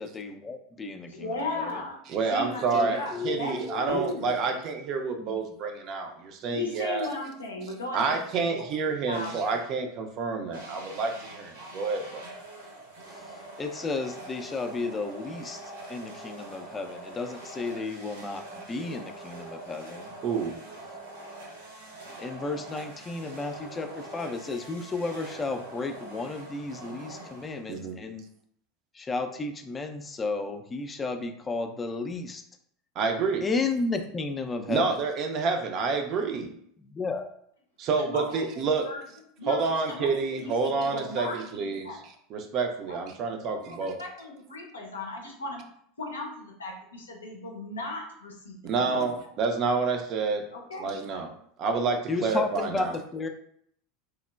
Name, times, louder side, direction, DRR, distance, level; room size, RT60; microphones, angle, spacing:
voice 1, 0.0-1.8 2.7-4.0 5.2-5.4 13.1-15.6 15.9-20.1 22.2-28.2 28.9-32.4 33.4-35.0 36.8-37.3 52.1-53.3, left 3 dB, 20° left, 6 dB, 0.3 m, -33 dB
voice 2, 1.1-2.0 2.3-3.5 3.8-4.6 6.5-8.7 9.0-9.4 38.0-39.0 39.4-42.0 42.9-43.0 43.4-45.6 46.0-49.1 50.5-50.9, left 2 dB, 80° left, 1 dB, 0.5 m, -36 dB
voice 3, 2.1-7.1 7.9-12.2 20.2-20.5 27.7-28.0 33.0-33.4 34.7-36.5 37.8-38.9 39.5-44.0 48.6-50.4 50.8-51.3 51.6-52.9, right 4 dB, 45° right, 4 dB, 0.4 m, -28 dB
sound 1, 9.1-9.8 10.5-27.9, right 2 dB, 70° right, 0.7 m, -44 dB
3.1 x 2.0 x 2.2 m, 0.68 s
figure-of-eight pair, 80°, 0 cm